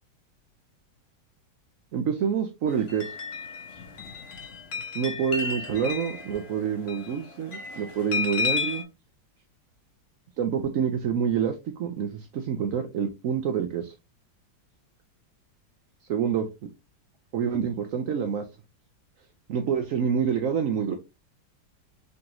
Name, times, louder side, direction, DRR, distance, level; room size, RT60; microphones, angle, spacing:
voice 1, 1.9-3.1 4.9-8.8 10.4-13.9 16.1-16.5 17.3-18.5 19.5-21.0, right 7 dB, 75° right, 0.7 m, -27 dB
sound 1, 2.7-8.8, left 5 dB, 50° left, 1.0 m, -33 dB
3.9 x 3.7 x 2.8 m
omnidirectional pair, 2.0 m